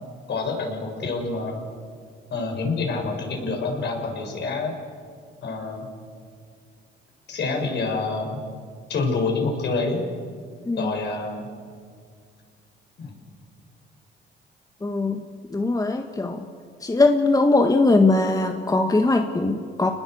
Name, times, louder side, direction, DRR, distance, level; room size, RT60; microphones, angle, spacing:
voice 1, 0.3-1.6 2.3-4.7 5.4-5.9 7.3-8.4 8.9-10.1 10.8-11.5 13.0-13.1, left 3 dB, 60° left, 2 dB, 6.8 m, -27 dB
voice 2, 14.8-15.2 15.5-16.4 16.8-19.9, left 2 dB, 20° left, 5 dB, 1.6 m, -20 dB
29.0 x 20.0 x 8.0 m, 2.1 s
cardioid pair, 90°, 20 cm